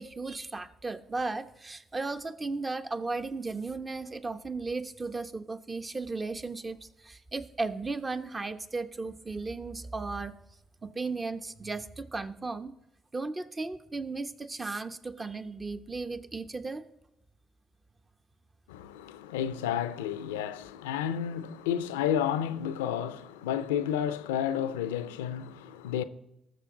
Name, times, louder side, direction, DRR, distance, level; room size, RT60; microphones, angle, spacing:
voice 1, 0.0-10.3 10.8-12.7 13.1-16.8, right 3 dB, 30° right, 1.0 m, -35 dB
voice 2, 18.7-26.0, left 9 dB, 85° left, 0.5 m, -31 dB
19.0 x 7.0 x 3.8 m
hypercardioid pair, 50°, 0 cm